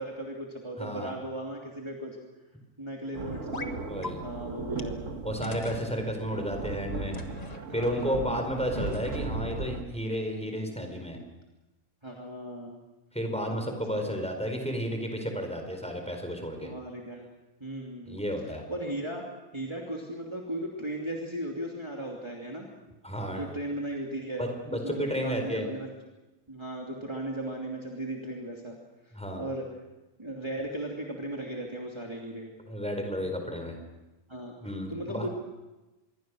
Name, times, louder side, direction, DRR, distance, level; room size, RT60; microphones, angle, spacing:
voice 1, 0.0-2.2 2.8-3.8 4.2-5.1 7.7-8.5 12.0-12.8 13.5-13.7 16.6-17.2 17.6-19.3 19.5-22.7 23.3-24.4 24.7-25.9 26.5-28.8 29.4-29.7 30.2-32.5 34.3-34.5 34.9-35.3, right 1 dB, 20° right, -1 dB, 2.9 m, -36 dB
voice 2, 0.8-1.1 3.9-4.2 5.2-7.2 7.7-11.2 13.1-16.7 18.1-18.6 23.0-23.4 24.4-25.7 29.1-29.4 32.7-33.8 34.6-35.3, equal, 5° left, 4 dB, 4.5 m, -32 dB
sound 1, 3.1-9.8, right 3 dB, 70° right, 1.9 m, -37 dB
sound 2, 3.5-3.7 4.0-4.1 4.8-4.9 5.4-5.9 7.1-7.6 8.8-9.5, left 3 dB, 30° left, 1.6 m, -40 dB
26.5 x 22.5 x 6.4 m, 1.1 s
omnidirectional pair, 1.4 m